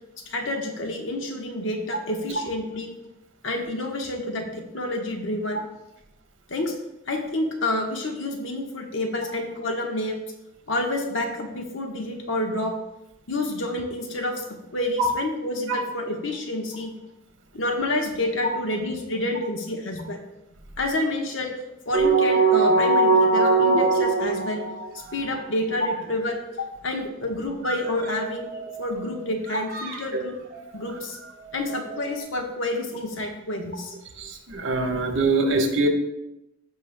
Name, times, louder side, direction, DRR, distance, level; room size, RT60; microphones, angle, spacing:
voice 1, 0.3-2.9 3.4-5.6 6.5-6.7 7.1-10.2 10.7-12.7 13.3-16.9 17.5-20.2 20.8-21.5 21.8-24.6 24.9-28.5 28.8-30.3 30.7-31.2 31.5-33.9, left 1 dB, 80° left, 2 dB, 1.2 m, -29 dB
sound 1, 21.9-25.4 25.7-25.8 27.6-29.1 29.5-30.0 30.5-30.8 31.5-32.2, right 3 dB, 50° right, 0.9 m, -22 dB
voice 2, 34.2-35.9, right 2 dB, 75° right, 3 dB, 1.3 m, -23 dB
14.5 x 5.4 x 2.2 m, 0.91 s
head